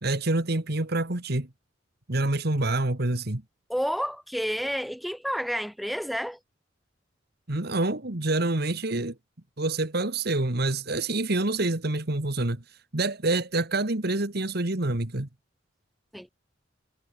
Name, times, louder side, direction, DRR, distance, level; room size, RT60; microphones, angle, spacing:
voice 1, 0.0-1.5 2.1-3.4 7.5-9.2 9.6-12.6 12.9-15.3, right 2 dB, 55° right, 2.0 m, -27 dB
voice 2, 3.7-6.4 16.1-16.3, equal, ahead, 4.8 m, -30 dB
head